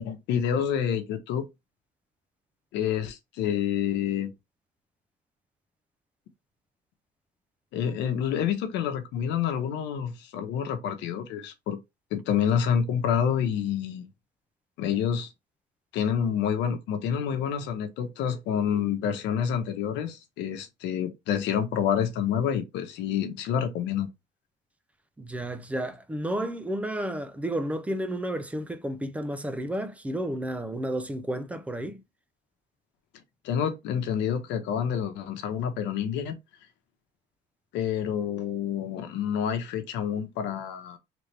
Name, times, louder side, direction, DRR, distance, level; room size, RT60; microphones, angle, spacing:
voice 1, 0.0-1.5 2.7-4.3 7.7-11.8 12.1-14.1 14.8-15.3 15.9-24.1 33.4-36.4 37.7-41.0, left 8 dB, 90° left, 0.9 m, -28 dB
voice 2, 25.2-32.0, right 1 dB, 5° right, 0.4 m, -32 dB
3.4 x 3.2 x 3.2 m
cardioid pair, 165°, 18 cm